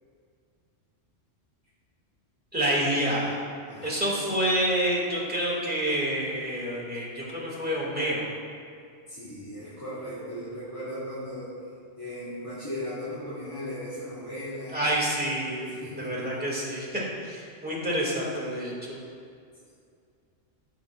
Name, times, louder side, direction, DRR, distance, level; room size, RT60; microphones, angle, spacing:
voice 1, 2.5-3.4 3.8-8.3 14.7-19.0, right 1 dB, 10° right, -5 dB, 2.0 m, -28 dB
voice 2, 9.1-11.5 12.0-14.8 15.7-16.3, equal, 20° left, -13 dB, 2.2 m, -37 dB
14.5 x 6.8 x 2.3 m, 2.3 s
omnidirectional pair, 1.2 m